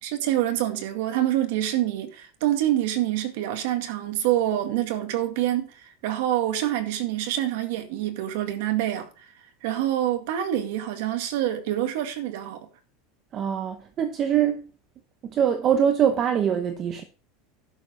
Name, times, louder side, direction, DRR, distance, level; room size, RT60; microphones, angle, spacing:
voice 1, 0.0-9.1 9.6-12.7, right 12 dB, 65° right, 2.0 m, -26 dB
voice 2, 13.3-14.6 15.3-17.0, right 8 dB, 25° right, 0.9 m, -23 dB
11.0 x 7.1 x 5.1 m
supercardioid pair, 165°, 0 cm